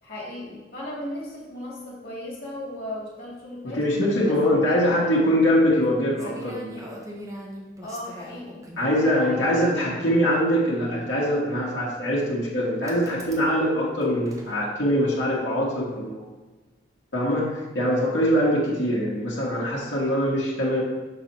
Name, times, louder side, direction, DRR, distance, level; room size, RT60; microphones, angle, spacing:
voice 1, 0.0-3.9 4.2-4.9 7.8-9.9, left 1 dB, 55° left, -5 dB, 2.2 m, -36 dB
voice 2, 3.6-6.9 8.8-16.2 17.1-20.8, equal, 80° left, -6 dB, 1.4 m, -23 dB
sound 1, 5.8-5.9 6.1-8.9 10.0-10.1 12.8-13.5 13.8-14.6, equal, 20° right, 0.8 m, -41 dB
6.1 x 4.2 x 4.5 m, 1.2 s
head